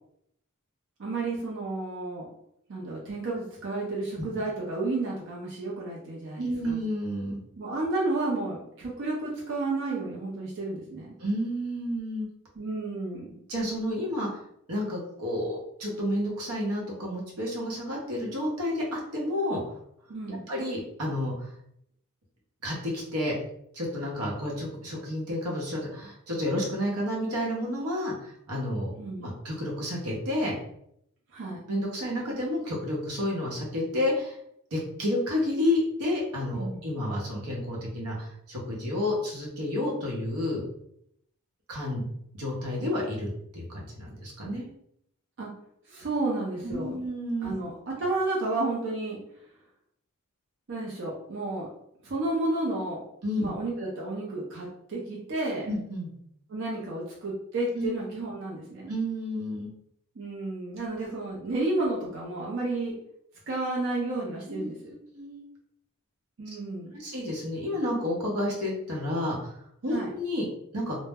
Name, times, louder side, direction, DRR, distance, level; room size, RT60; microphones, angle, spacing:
voice 1, 1.0-2.3 2.7-6.8 7.6-11.1 12.6-13.4 20.1-20.4 29.0-29.3 31.3-31.6 36.5-36.8 45.4-45.5 45.9-46.9 47.4-49.2 50.7-51.7 52.0-53.0 53.4-55.7 56.5-58.9 60.2-62.9 63.5-64.8 66.4-66.9 69.9-70.1, right 2 dB, 55° right, -4 dB, 0.5 m, -31 dB
voice 2, 6.4-7.4 11.2-12.3 13.5-14.4 14.7-19.6 20.3-21.5 22.6-23.3 23.7-28.9 29.2-30.6 31.7-34.4 34.7-40.6 41.7-42.0 42.3-44.6 46.6-47.5 53.2-53.5 55.7-56.1 57.7-57.9 58.9-59.7 64.5-65.4 67.0-69.5 69.8-70.4 70.7-71.0, left 1 dB, 85° right, -3 dB, 0.8 m, -30 dB
2.0 x 2.0 x 3.4 m, 0.74 s
head